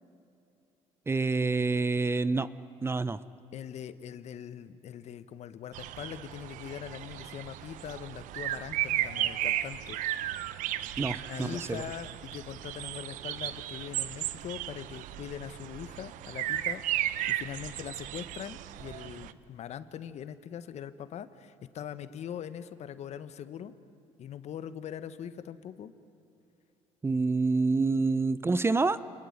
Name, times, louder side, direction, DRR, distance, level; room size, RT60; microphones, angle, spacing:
voice 1, 1.1-2.5 2.8-3.2 11.0-11.8 27.0-29.0, right 3 dB, 20° right, 16 dB, 0.7 m, -27 dB
voice 2, 3.5-10.0 11.0-23.7 24.2-25.9, left 9 dB, 55° left, 13 dB, 1.4 m, -42 dB
sound 1, 5.7-19.3, right 13 dB, 75° right, 0.9 m, -35 dB
29.0 x 20.0 x 9.6 m, 2.8 s
cardioid pair, 105°, 13 cm